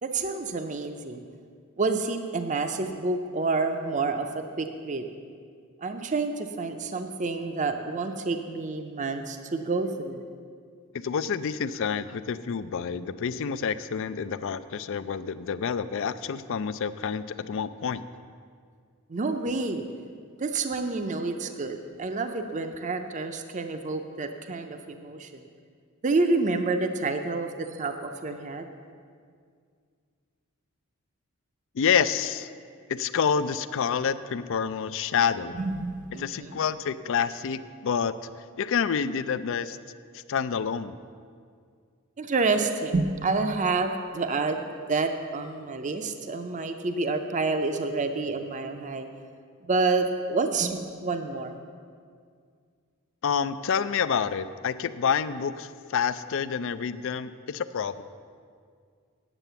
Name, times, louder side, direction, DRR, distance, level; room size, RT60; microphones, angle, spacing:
voice 1, 0.0-1.2 1.8-5.1 5.8-10.2 19.1-19.8 20.4-25.4 26.0-28.7 35.5-36.6 42.2-44.6 44.9-49.1 49.6-51.6, right 3 dB, 35° right, 7 dB, 0.5 m, -28 dB
voice 2, 10.9-18.0 31.8-32.5 32.9-35.6 36.2-38.1 38.6-39.8 40.1-41.0 53.2-58.0, left 7 dB, 60° left, 14 dB, 0.4 m, -28 dB
9.0 x 8.1 x 6.9 m, 2.1 s
head